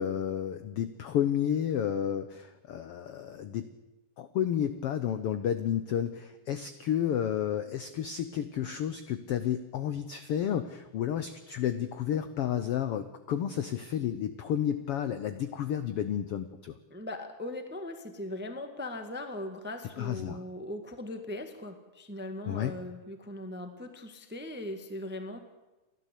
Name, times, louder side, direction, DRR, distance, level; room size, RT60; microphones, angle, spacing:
voice 1, 0.0-3.7 4.2-16.7 20.0-20.4 22.5-22.7, left 9 dB, 80° left, 11 dB, 1.3 m, -31 dB
voice 2, 16.9-25.4, left 1 dB, 5° right, 7 dB, 0.8 m, -39 dB
30.0 x 12.5 x 8.4 m, 1.1 s
omnidirectional pair, 3.8 m